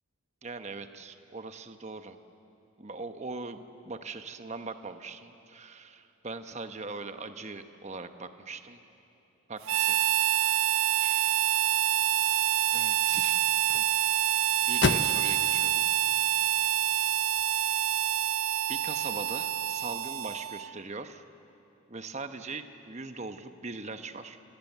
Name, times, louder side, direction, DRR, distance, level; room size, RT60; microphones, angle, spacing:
voice 1, 0.4-2.2 2.8-8.8 9.5-10.0 11.0-11.5 12.7-13.4 13.8-13.9 14.6-15.9 16.9-17.1 18.7-21.2 21.9-24.4, right 3 dB, 30° right, 8 dB, 1.0 m, -41 dB
Harmonica, 9.6-20.7, right 12 dB, 80° right, 0.5 m, -27 dB
sound 1, 11.3-17.4, left 4 dB, 55° left, 0.7 m, -37 dB
29.5 x 18.0 x 8.1 m, 2.9 s
head